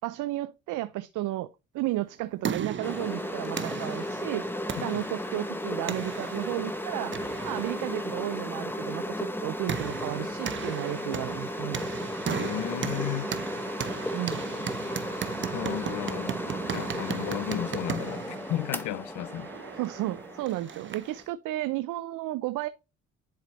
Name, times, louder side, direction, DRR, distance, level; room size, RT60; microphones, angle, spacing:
voice 1, 0.0-1.5 1.7-4.5 4.8-11.8 14.1-14.7 19.7-22.7, right 16 dB, 85° right, 0.5 m, -33 dB
sound 1, 2.0-21.2, right 7 dB, 40° right, 0.8 m, -37 dB
sound 2, 2.8-21.3, left 1 dB, 5° left, 0.9 m, -35 dB
voice 2, 4.8-5.1 12.3-13.3 15.5-16.4 16.7-19.5, left 13 dB, 75° left, 0.6 m, -34 dB
10.5 x 4.1 x 3.0 m
cardioid pair, 90°, 30 cm